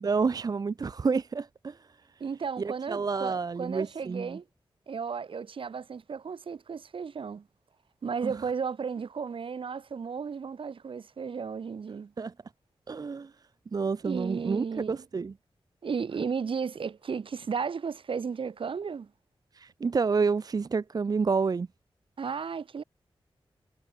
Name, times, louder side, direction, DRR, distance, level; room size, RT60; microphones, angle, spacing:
voice 1, 0.0-2.2 2.6-4.4 8.2-8.4 12.2-12.3 12.9-13.3 13.7-15.3 19.5-21.7, right 5 dB, 45° right, 0.6 m, -29 dB
voice 2, 2.2-4.4 4.9-7.5 8.0-12.1 14.0-15.0 15.8-19.1 22.2-22.8, right 6 dB, 70° right, 3.0 m, -34 dB
wide cardioid pair, 135°, 9 cm